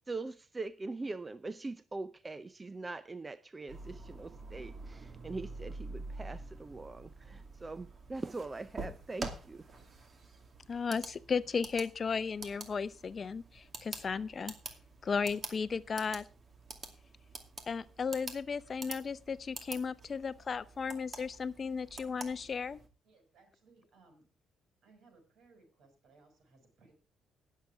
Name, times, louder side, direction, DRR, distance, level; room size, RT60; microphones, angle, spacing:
voice 1, 0.1-9.7, right 3 dB, 25° right, 0.6 m, -42 dB
sound 1, 3.7-22.9, right 3 dB, 45° right, 2.4 m, -47 dB
voice 2, 10.7-14.5 15.0-16.2 17.7-22.8, left 5 dB, 40° left, 0.6 m, -35 dB
voice 3, 23.0-24.3 24.8-26.9, right 3 dB, 75° right, 6.4 m, -63 dB
18.5 x 7.5 x 3.5 m
cardioid pair, 90°, 0 cm